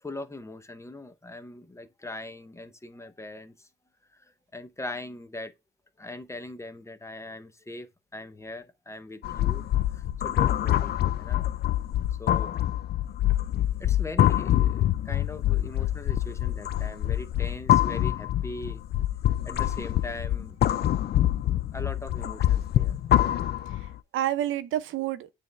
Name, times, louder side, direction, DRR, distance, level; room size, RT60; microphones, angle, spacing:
voice 1, 0.0-3.5 4.5-5.5 6.0-9.6 9.9-11.5 12.2-12.5 13.8-18.8 19.4-20.6 21.5-23.0, left 2 dB, 15° left, 0.6 m, -40 dB
sound 1, 9.2-24.0, left 12 dB, 55° left, 0.4 m, -25 dB
voice 2, 23.1-25.3, right 12 dB, 80° right, 0.6 m, -31 dB
8.8 x 3.4 x 3.3 m
cardioid pair, 90°, 20 cm